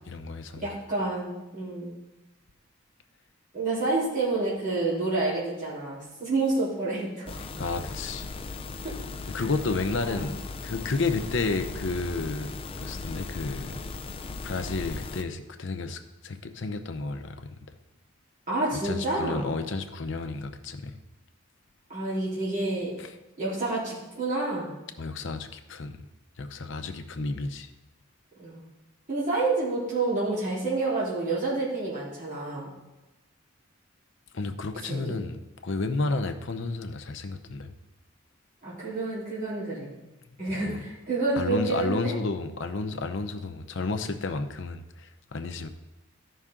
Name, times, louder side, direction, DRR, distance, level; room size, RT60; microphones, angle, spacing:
voice 1, 0.1-0.7 7.6-8.3 9.3-12.5 12.8-13.8 14.4-17.6 18.7-20.9 23.0-23.1 25.0-26.0 26.4-27.7 34.3-37.7 40.6-40.8 41.4-45.7, left 3 dB, 60° left, 8 dB, 0.7 m, -31 dB
voice 2, 0.6-1.9 3.5-7.4 10.0-10.3 18.5-19.5 21.9-22.9 23.4-24.7 28.4-28.6 29.1-32.7 34.9-35.2 38.6-39.9 40.4-42.1, right 2 dB, 35° right, -9 dB, 3.4 m, -29 dB
sound 1, 7.3-15.2, left 3 dB, 25° left, 0.4 m, -37 dB
13.0 x 5.6 x 3.7 m, 1.0 s
head